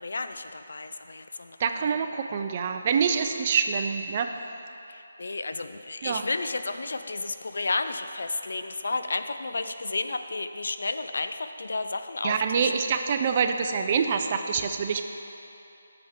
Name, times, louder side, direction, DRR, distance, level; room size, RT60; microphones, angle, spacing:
voice 1, 0.0-1.6 1.8-1.9 4.9-12.7, left 3 dB, 70° left, 9 dB, 0.4 m, -32 dB
voice 2, 1.6-4.3 6.0-6.3 12.2-15.0, right 6 dB, 35° right, 6 dB, 0.4 m, -26 dB
10.0 x 6.9 x 3.6 m, 2.9 s
figure-of-eight pair, 160°, 0 cm